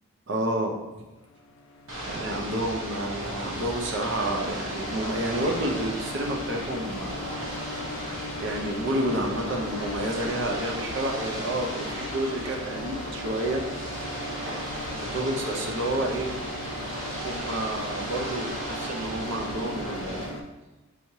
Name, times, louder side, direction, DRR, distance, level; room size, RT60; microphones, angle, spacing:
voice 1, 0.3-1.0 2.0-7.3 8.4-13.9 15.1-16.3 17.2-20.4, right 1 dB, 55° right, 1 dB, 0.6 m, -30 dB
sound 1, 1.2-20.4, left 2 dB, 75° left, 0.4 m, -40 dB
Ocean / Boat Water vehicle, 1.9-20.3, right 1 dB, 80° right, 1.1 m, -35 dB
5.6 x 3.1 x 2.8 m, 1.1 s
head